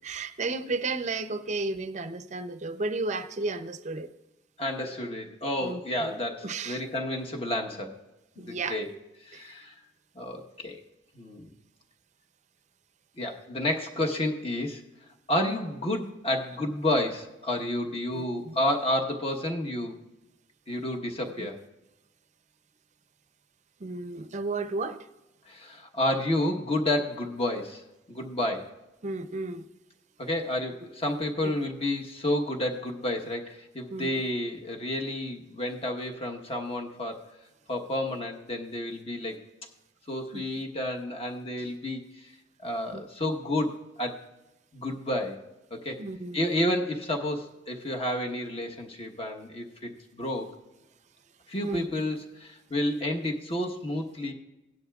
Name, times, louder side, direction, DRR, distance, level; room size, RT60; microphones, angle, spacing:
voice 1, 0.0-4.1 5.6-6.8 8.4-8.8 9.3-9.5 18.1-18.5 21.4-21.5 23.8-25.0 29.0-29.6 33.9-34.1 40.3-40.4 42.9-43.0 46.0-46.5 51.6-51.9, right 3 dB, 40° right, 0.6 m, -33 dB
voice 2, 4.6-8.0 8.4-8.9 9.2-9.7 10.1-10.8 11.1-11.5 13.2-14.8 15.3-19.9 20.7-21.6 25.4-27.8 28.1-28.7 30.2-37.3 37.7-39.4 40.1-42.3 42.6-44.2 44.7-45.4 45.7-46.0 46.3-49.9 50.2-50.5 51.5-54.3, left 1 dB, 30° left, 1.1 m, -30 dB
17.5 x 10.5 x 2.4 m
head